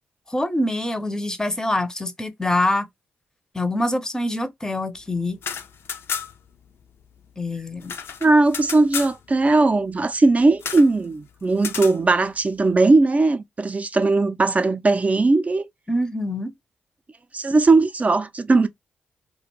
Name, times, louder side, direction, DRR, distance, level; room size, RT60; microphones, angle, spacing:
voice 1, 0.3-2.9 3.5-5.4 7.4-7.9 15.9-16.5, left 1 dB, 15° left, 0.6 m, -25 dB
sound 1, 5.3-6.5 6.8-6.9 7.2-9.2 10.6-10.9 11.6-12.0, left 7 dB, 70° left, 0.4 m, -32 dB
voice 2, 8.2-15.7 17.3-18.7, right 3 dB, 35° right, 0.4 m, -18 dB
2.4 x 2.1 x 2.9 m
supercardioid pair, 55°, 4 cm